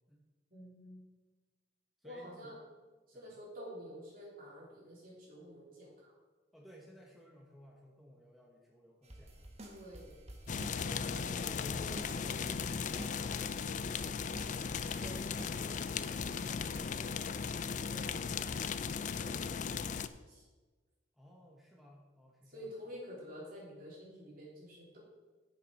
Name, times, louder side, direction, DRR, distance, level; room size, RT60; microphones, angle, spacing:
voice 1, 0.5-1.0 2.0-2.6 3.1-6.1 9.6-10.2 10.7-13.8 14.6-16.4 16.7-17.3 17.8-20.4 22.5-25.0, equal, 50° right, -4 dB, 3.4 m, -50 dB
voice 2, 2.0-2.6 3.1-3.3 6.5-9.8 21.2-22.7, equal, ahead, -2 dB, 1.0 m, -58 dB
sound 1, 9.0-16.8, right 1 dB, 35° right, 1.4 m, -52 dB
sound 2, 10.5-20.1, left 6 dB, 45° left, 0.4 m, -37 dB
9.2 x 7.0 x 5.3 m, 1.3 s
head